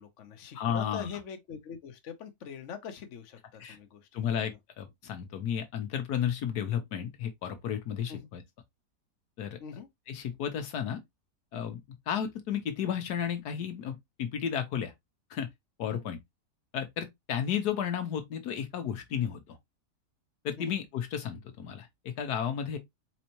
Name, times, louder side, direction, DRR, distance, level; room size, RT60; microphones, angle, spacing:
voice 1, 0.0-4.4 8.1-8.3 9.6-9.9 15.9-16.0 20.6-20.8, left 7 dB, 55° left, 1.1 m, -43 dB
voice 2, 0.5-1.1 3.6-3.8 4.1-8.4 9.4-9.6 10.1-11.0 11.5-11.8 12.1-14.9 15.3-15.5 15.8-16.2 16.7-19.6 20.4-22.8, left 8 dB, 75° left, 1.4 m, -33 dB
4.3 x 4.0 x 2.9 m
omnidirectional pair, 1.7 m